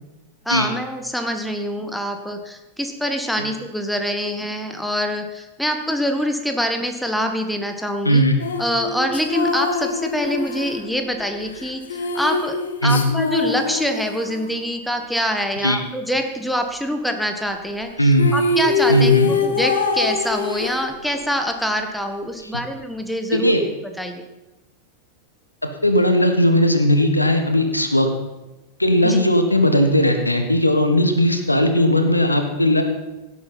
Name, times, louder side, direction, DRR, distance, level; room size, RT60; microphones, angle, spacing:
voice 1, 0.4-8.2 8.6-12.6 12.8-23.5 24.0-24.2 29.0-29.3, equal, ahead, 6 dB, 1.5 m, -25 dB
voice 2, 8.0-8.4 12.8-13.0 15.6-15.8 18.0-18.3 18.9-19.3 23.3-23.6 25.8-28.1 28.8-32.8, left 1 dB, 85° left, 7 dB, 1.4 m, -17 dB
sound 1, 8.4-14.6 17.8-17.9 18.1-21.3, left 4 dB, 65° left, 1.4 m, -24 dB
16.5 x 8.3 x 5.7 m, 1.0 s
figure-of-eight pair, 90°, 0 cm